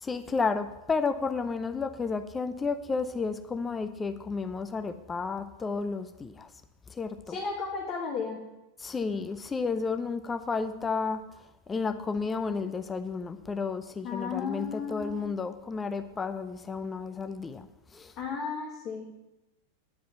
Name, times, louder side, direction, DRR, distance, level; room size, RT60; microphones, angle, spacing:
voice 1, 0.0-6.5 6.9-7.4 8.8-11.2 11.7-17.7 17.9-18.1, left 4 dB, 15° left, 9 dB, 0.6 m, -32 dB
voice 2, 7.3-8.4 14.0-15.2 18.2-19.2, left 5 dB, 35° left, -2 dB, 1.9 m, -34 dB
9.8 x 5.1 x 8.1 m, 0.94 s
figure-of-eight pair, 90°, 0 cm